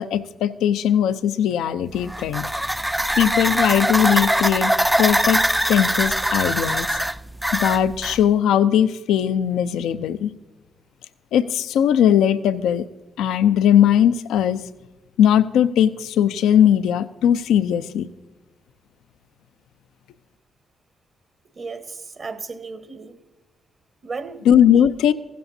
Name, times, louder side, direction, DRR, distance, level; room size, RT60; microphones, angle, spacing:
voice 1, 0.0-2.5 3.2-5.4 5.7-6.9 7.5-10.3 11.3-12.9 13.2-14.6 15.2-18.1 24.4-25.1, left 9 dB, 80° left, 13 dB, 0.4 m, -19 dB
sound 1, 1.9-8.2, right 1 dB, 5° right, 0.4 m, -22 dB
voice 2, 21.6-23.2 24.0-24.4 24.7-24.9, right 4 dB, 50° right, 10 dB, 1.2 m, -34 dB
15.5 x 13.0 x 2.7 m, 1.1 s
supercardioid pair, 50°, 0 cm